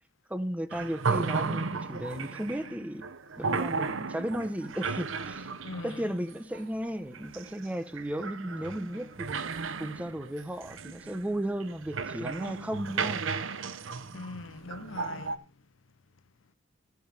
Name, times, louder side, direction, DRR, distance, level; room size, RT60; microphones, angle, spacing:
voice 1, 0.3-3.0 3.4-5.5 5.8-9.4 9.8-13.2, equal, 5° right, 1.0 m, -35 dB
sound 1, 0.7-15.4, right 4 dB, 85° right, 0.9 m, -35 dB
voice 2, 5.6-6.2 14.1-15.7, left 3 dB, 85° left, 0.7 m, -42 dB
14.0 x 9.4 x 3.5 m
head